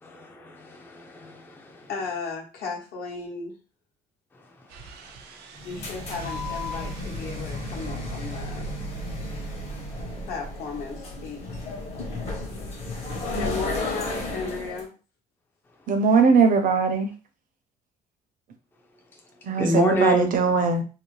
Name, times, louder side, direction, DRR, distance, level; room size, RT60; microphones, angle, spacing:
voice 1, 0.0-1.9 4.3-5.7 9.3-10.3 12.1-13.4 19.6-20.3, equal, 10° left, 0.4 m, -30 dB
voice 2, 1.9-3.6 5.6-8.7 10.3-11.4 13.4-14.9, left 4 dB, 70° left, 1.1 m, -35 dB
sound 1, 4.7-12.4, right 3 dB, 85° right, 0.5 m, -41 dB
sound 2, 5.5-14.8, left 2 dB, 40° left, 0.9 m, -33 dB
voice 3, 15.9-17.1 19.4-20.8, right 5 dB, 55° right, 0.7 m, -20 dB
2.8 x 2.0 x 3.2 m
cardioid pair, 110°, 17 cm